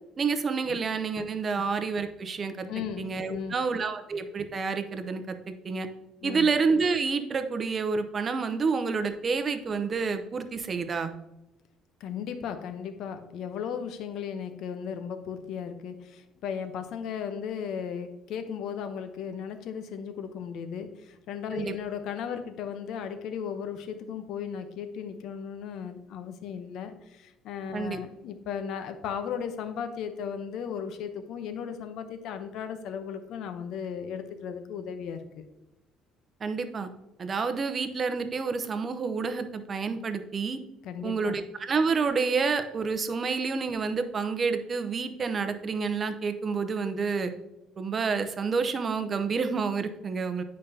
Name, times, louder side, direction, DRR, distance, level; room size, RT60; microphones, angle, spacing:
voice 1, 0.2-2.7 3.0-5.9 6.2-11.1 21.5-21.8 27.7-28.0 36.4-36.9 37.2-40.6 41.0-47.3 47.8-50.4, right 5 dB, 30° right, 8 dB, 0.7 m, -29 dB
voice 2, 2.7-3.7 6.2-6.5 12.0-35.5 40.8-41.4, left 7 dB, 65° left, 9 dB, 0.8 m, -36 dB
9.0 x 5.3 x 2.8 m, 0.96 s
cardioid pair, 145°, 0 cm